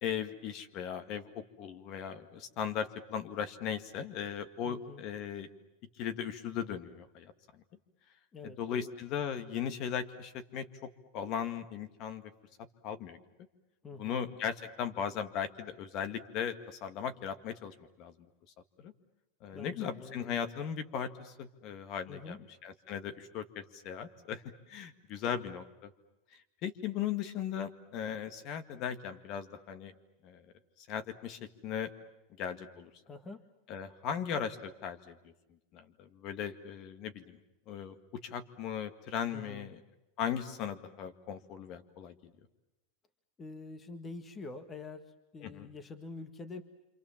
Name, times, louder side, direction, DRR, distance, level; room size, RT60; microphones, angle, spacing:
voice 1, 0.0-5.5 6.0-7.3 8.4-12.3 12.8-13.2 14.0-18.1 18.8-18.9 19.4-24.4 24.7-25.9 26.6-29.9 30.2-30.4 30.9-31.9 32.4-32.9 33.7-35.3 35.7-37.4 37.7-38.0 38.2-39.8 40.2-42.1 45.4-45.7, left 8 dB, 50° left, 9 dB, 2.1 m, -38 dB
voice 2, 4.6-5.0 8.3-9.0 13.8-14.2 19.5-20.4 22.1-22.4 25.2-25.3 33.0-33.4 39.3-39.7 43.4-46.6, left 3 dB, 25° left, 10 dB, 1.7 m, -46 dB
27.0 x 27.0 x 7.4 m, 1.0 s
supercardioid pair, 125°, 0 cm